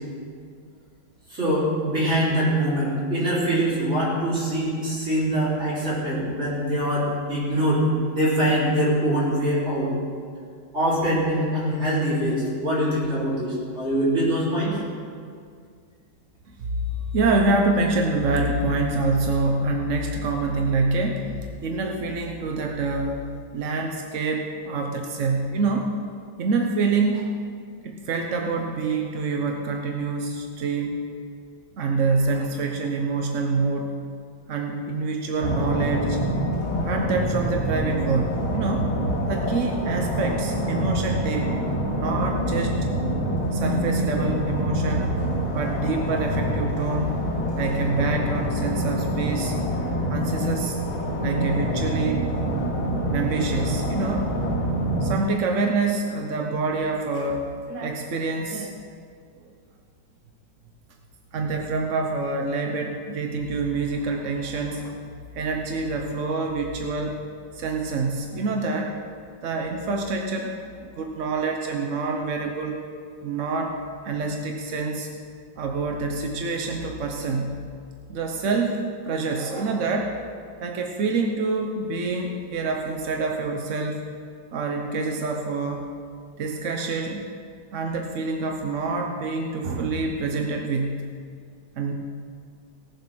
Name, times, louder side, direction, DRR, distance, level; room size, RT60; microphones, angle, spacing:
voice 1, 1.3-7.8 8.1-9.9 10.7-14.8, right 1 dB, 30° right, -7 dB, 4.2 m, -23 dB
voice 2, 16.5-23.2 23.5-25.9 26.4-27.3 27.8-31.0 31.8-34.0 34.5-36.2 36.8-38.9 39.3-41.5 42.0-42.8 43.5-47.3 47.6-49.6 50.1-50.8 51.2-52.2 53.1-54.3 55.0-58.7 61.3-65.0 65.3-67.2 67.5-69.0 69.4-70.5 70.8-72.8 73.2-73.8 74.0-75.1 75.6-77.6 78.1-80.1 80.6-84.1 84.5-85.9 86.4-87.3 87.7-91.1 91.8-91.9, right 3 dB, 55° right, 2 dB, 0.8 m, -26 dB
sound 1, 35.4-55.1, equal, 70° left, 2.6 m, -26 dB
18.0 x 7.3 x 6.1 m, 2.2 s
omnidirectional pair, 2.3 m